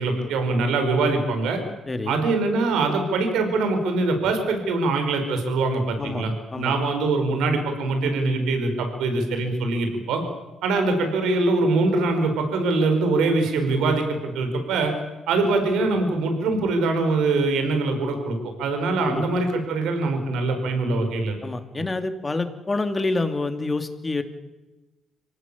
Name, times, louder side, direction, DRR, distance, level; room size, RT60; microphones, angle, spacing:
voice 1, 0.0-1.6 2.1-10.2 10.6-14.9 15.3-21.3 21.8-21.9, right 3 dB, 85° right, 6 dB, 5.1 m, -23 dB
voice 2, 1.9-2.2 6.0-6.3 6.5-6.8 19.0-19.2 21.4-24.2, left 2 dB, 25° left, 8 dB, 2.8 m, -27 dB
25.5 x 18.0 x 8.7 m, 1.1 s
cardioid pair, 90°, 0 cm